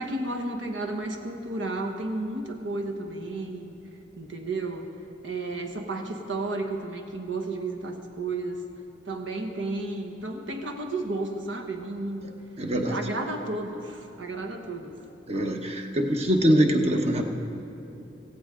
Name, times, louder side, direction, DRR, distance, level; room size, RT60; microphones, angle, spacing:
voice 1, 0.0-3.7 4.2-4.9 5.2-8.6 9.0-12.3 12.9-14.9, right 2 dB, 80° right, 4 dB, 1.3 m, -32 dB
voice 2, 12.6-13.0 15.3-17.2, equal, 35° right, 3 dB, 1.0 m, -23 dB
17.5 x 15.0 x 3.8 m, 3.0 s
head